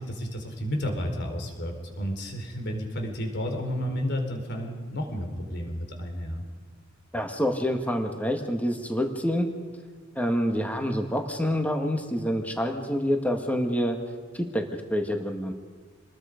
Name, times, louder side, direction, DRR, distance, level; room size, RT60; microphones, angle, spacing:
voice 1, 0.0-6.4, equal, 60° left, 3 dB, 3.9 m, -31 dB
voice 2, 7.1-9.5 10.2-14.0 14.3-14.6 14.9-15.5, equal, 10° left, 4 dB, 1.8 m, -27 dB
28.0 x 20.5 x 5.2 m, 1.5 s
head